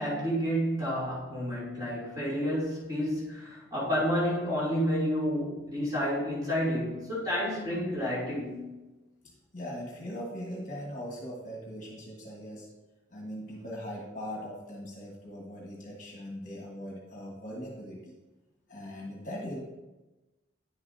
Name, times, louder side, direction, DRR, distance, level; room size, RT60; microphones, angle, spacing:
voice 1, 0.0-8.6, equal, 20° right, -9 dB, 2.9 m, -30 dB
voice 2, 9.5-12.7 13.1-18.1 18.7-19.6, equal, 40° left, -2 dB, 1.4 m, -40 dB
9.7 x 7.0 x 2.7 m, 1.1 s
head